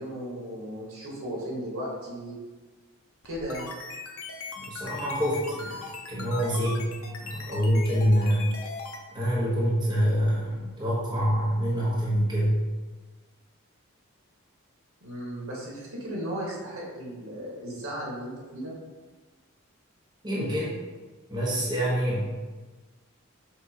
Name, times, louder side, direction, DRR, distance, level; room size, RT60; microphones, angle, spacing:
voice 1, 0.0-2.3 3.2-3.7 15.0-18.7, equal, 75° right, -4 dB, 1.8 m, -35 dB
sound 1, 3.2-9.0, left 4 dB, 75° left, 0.8 m, -39 dB
voice 2, 4.6-6.9 7.2-8.5 9.1-12.6 20.2-20.8 21.3-22.3, equal, 20° right, -7 dB, 1.3 m, -26 dB
6.8 x 2.7 x 5.1 m, 1.3 s
head